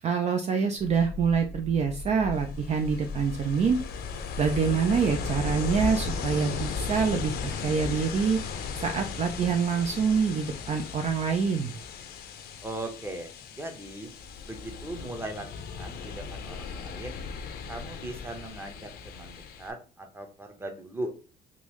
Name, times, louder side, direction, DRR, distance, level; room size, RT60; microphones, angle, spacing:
voice 1, 0.0-3.8 4.4-8.4 8.8-11.7, right 6 dB, 40° right, 5 dB, 0.4 m, -26 dB
sound 1, 0.8-7.3, left 3 dB, 25° left, 0.6 m, -40 dB
Ocean, 2.3-19.7, left 5 dB, 70° left, 0.6 m, -37 dB
voice 2, 12.6-14.1 14.4-15.5 15.8-17.2 17.7-21.1, right 2 dB, 15° right, 4 dB, 0.8 m, -39 dB
3.8 x 2.6 x 3.0 m, 0.37 s
cardioid pair, 110°, 17 cm